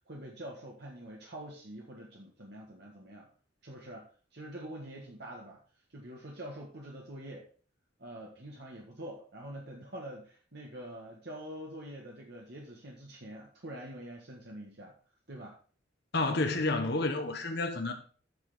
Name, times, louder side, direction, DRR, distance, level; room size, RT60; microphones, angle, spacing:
voice 1, 0.1-3.3 3.6-5.6 5.9-7.5 8.0-14.9 15.3-15.6, right 1 dB, 55° right, 1.7 m, -45 dB
voice 2, 16.1-17.9, left 2 dB, 55° left, 1.3 m, -30 dB
8.8 x 6.7 x 5.0 m
head